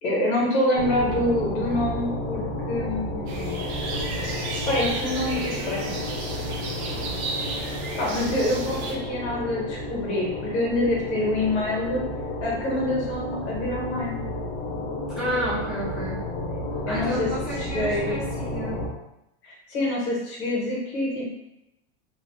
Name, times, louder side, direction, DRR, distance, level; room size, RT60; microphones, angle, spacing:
voice 1, 0.0-3.7 4.7-5.9 6.8-7.2 8.0-12.0 12.4-14.2 16.9-17.3 17.6-18.2 19.4-21.3, left 1 dB, 90° left, -4 dB, 1.3 m, -26 dB
sound 1, 0.7-18.9, left 1 dB, 45° left, 0.9 m, -32 dB
sound 2, 3.3-8.9, right 3 dB, 85° right, 0.7 m, -33 dB
voice 2, 15.1-16.2 16.9-18.8, equal, ahead, -11 dB, 0.8 m, -30 dB
2.7 x 2.1 x 3.2 m, 0.87 s
supercardioid pair, 165°, 32 cm